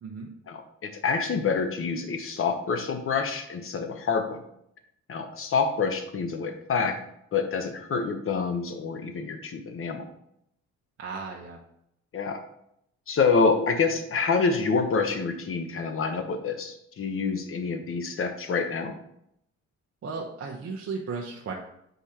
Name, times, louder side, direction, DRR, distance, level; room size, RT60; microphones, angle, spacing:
voice 1, 0.5-4.4 5.1-7.0 7.3-10.0 12.1-12.4 13.1-18.9, left 5 dB, 45° left, 7 dB, 1.0 m, -27 dB
voice 2, 11.0-11.6 20.0-21.5, right 4 dB, 45° right, -2 dB, 1.0 m, -35 dB
8.0 x 4.9 x 2.9 m, 0.75 s
cardioid pair, 90°, 30 cm